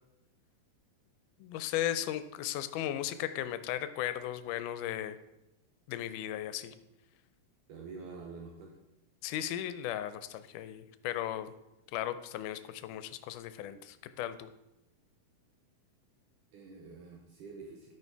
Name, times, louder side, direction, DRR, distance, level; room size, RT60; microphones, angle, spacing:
voice 1, 1.4-5.2 5.9-6.8 9.2-11.5 11.9-14.5, left 12 dB, 80° left, 12 dB, 1.9 m, -36 dB
voice 2, 7.7-8.7 16.5-17.9, right 4 dB, 70° right, 0 dB, 2.4 m, -47 dB
12.5 x 5.6 x 4.6 m, 0.93 s
omnidirectional pair, 4.0 m